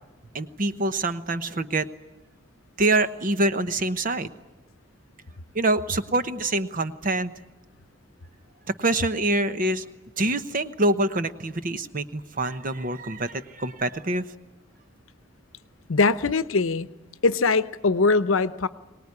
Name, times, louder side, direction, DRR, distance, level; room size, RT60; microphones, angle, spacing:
voice 1, 0.3-1.9 2.8-4.3 5.5-7.3 8.7-9.8 10.2-14.3, right 2 dB, 40° right, 10 dB, 0.9 m, -25 dB
voice 2, 15.9-16.9 17.2-18.7, left 3 dB, 80° left, 13 dB, 0.8 m, -21 dB
23.5 x 19.0 x 9.7 m, 1.1 s
head